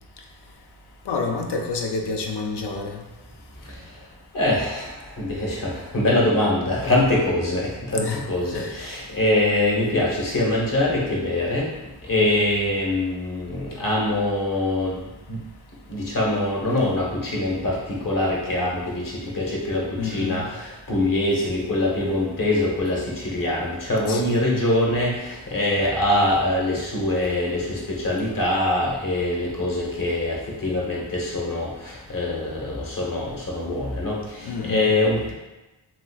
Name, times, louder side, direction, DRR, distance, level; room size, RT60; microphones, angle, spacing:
voice 1, 1.1-3.0 7.9-8.2 8.5-8.7 12.2-12.3 20.0-20.5 24.1-24.4 34.4-35.0, left 4 dB, 60° left, 2 dB, 0.6 m, -28 dB
voice 2, 4.3-11.7 12.0-15.0 15.3-15.4 15.9-35.3, left 1 dB, 45° left, -3 dB, 1.0 m, -24 dB
3.0 x 3.0 x 2.3 m, 1.1 s
cardioid pair, 45°, 45 cm